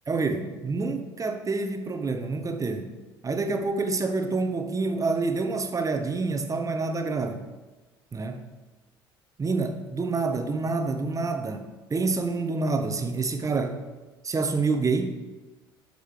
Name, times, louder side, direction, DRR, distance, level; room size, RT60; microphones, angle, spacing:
voice 1, 0.1-2.9 3.2-7.4 8.1-8.5 9.4-13.8 14.2-15.2, right 3 dB, 25° right, 7 dB, 1.0 m, -27 dB
11.0 x 6.7 x 3.3 m, 1.2 s
figure-of-eight pair, 55°, 13 cm